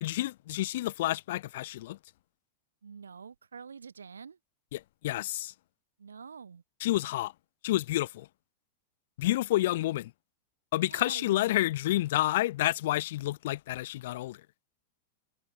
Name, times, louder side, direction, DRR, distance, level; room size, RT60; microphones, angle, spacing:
voice 1, 0.0-2.0 4.7-5.5 6.8-7.3 7.6-8.3 9.2-10.1 10.7-14.4, left 16 dB, 55° left, 0.4 m, -29 dB
voice 2, 2.8-4.4 6.0-6.6 10.9-11.5, right 6 dB, 70° right, 2.0 m, -47 dB
figure-of-eight pair, 90°, 0 cm